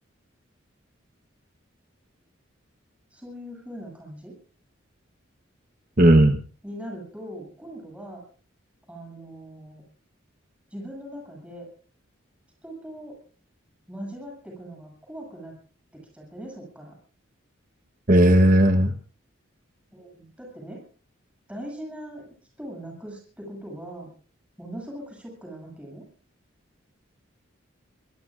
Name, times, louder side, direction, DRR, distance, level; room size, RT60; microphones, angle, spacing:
voice 1, 3.1-4.4 6.6-8.2 8.9-9.8 10.7-11.7 12.6-13.2 13.9-15.5 15.9-16.9 19.9-20.8 21.5-22.3 22.6-24.1 24.6-26.1, equal, 5° right, -2 dB, 7.8 m, -40 dB
voice 2, 6.0-6.4 18.1-18.9, right 1 dB, 40° right, 7 dB, 1.0 m, -16 dB
25.5 x 20.0 x 2.5 m, 0.39 s
head